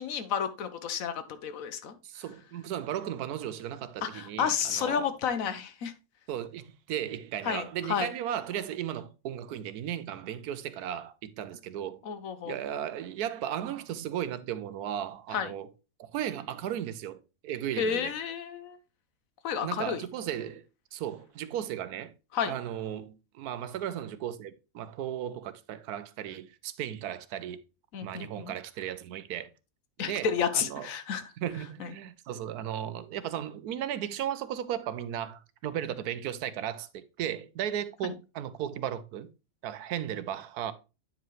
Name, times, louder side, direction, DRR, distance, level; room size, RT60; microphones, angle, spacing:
voice 1, 0.0-2.0 4.0-5.9 7.4-8.1 12.0-12.5 15.3-15.5 17.8-18.8 19.4-20.0 22.3-22.5 27.9-28.5 30.0-31.2 31.8-31.9 38.0-38.1, left 7 dB, 65° left, 1.1 m, -31 dB
voice 2, 2.0-5.1 6.3-12.0 12.5-15.7 16.0-18.1 19.6-22.1 22.5-27.6 28.0-29.5 30.1-30.9 31.4-39.3 39.6-40.7, right 10 dB, 90° right, 1.2 m, -35 dB
9.4 x 4.9 x 3.1 m
omnidirectional pair, 1.6 m